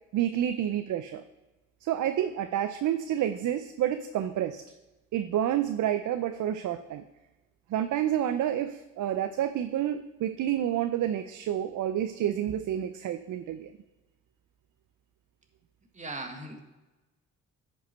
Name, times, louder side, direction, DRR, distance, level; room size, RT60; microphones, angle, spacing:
voice 1, 0.1-1.2 1.8-4.6 5.1-7.0 7.7-13.7, right 11 dB, 65° right, 10 dB, 0.6 m, -29 dB
voice 2, 15.9-16.6, right 2 dB, 20° right, 3 dB, 1.7 m, -38 dB
9.9 x 5.5 x 4.4 m, 1.1 s
supercardioid pair, 70°, 32 cm